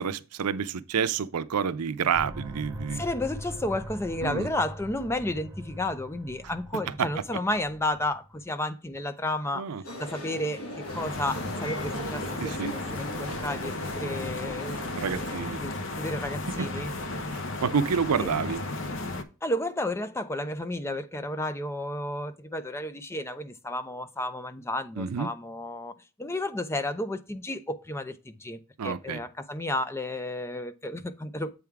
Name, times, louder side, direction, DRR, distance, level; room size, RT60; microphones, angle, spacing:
voice 1, 0.0-3.0 4.2-4.5 7.0-7.1 9.5-9.8 12.4-12.7 15.0-15.6 16.6-16.7 17.6-18.6 25.0-25.3 28.8-29.2, right 6 dB, 90° right, 0.5 m, -28 dB
sound 1, 2.1-8.4, equal, 10° right, 1.4 m, -41 dB
voice 2, 2.9-9.7 10.0-14.8 15.6-16.9 18.2-18.3 19.4-25.9 26.2-31.5, left 1 dB, 10° left, 0.4 m, -32 dB
sound 2, 9.8-15.4, equal, 80° left, 2.2 m, -39 dB
sound 3, 10.8-19.2, left 2 dB, 55° left, 0.8 m, -34 dB
8.0 x 3.6 x 4.6 m
head